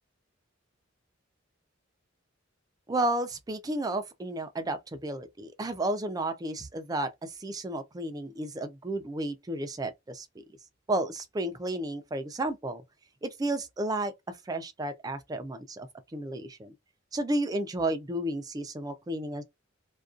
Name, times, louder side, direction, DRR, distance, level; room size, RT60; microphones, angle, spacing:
voice 1, 2.9-10.3 10.9-12.8 13.2-15.9 16.1-16.7 17.1-19.4, right 1 dB, 20° right, 0.4 m, -32 dB
2.4 x 2.2 x 2.4 m
head